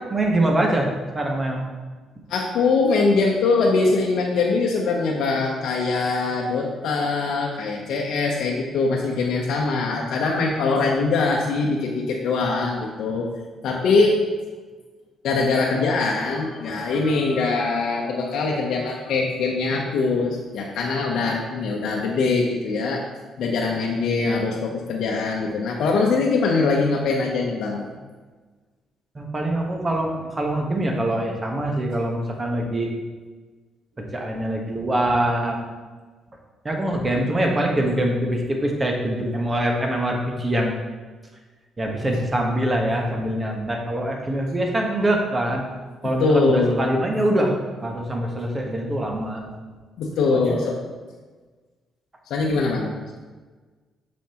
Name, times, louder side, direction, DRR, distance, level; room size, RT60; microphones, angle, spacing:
voice 1, 0.1-0.9 1.1-1.6 29.1-32.9 34.1-35.7 36.6-40.8 41.8-45.6 46.0-49.5 50.3-50.6, right 1 dB, 25° right, 1 dB, 1.2 m, -24 dB
voice 2, 2.3-13.3 13.6-14.2 15.2-23.0 23.4-27.9 46.2-46.8 50.0-50.7 52.3-52.9, left 3 dB, 75° left, -1 dB, 0.8 m, -22 dB
7.2 x 5.3 x 2.9 m, 1.4 s
cardioid pair, 90°, 0 cm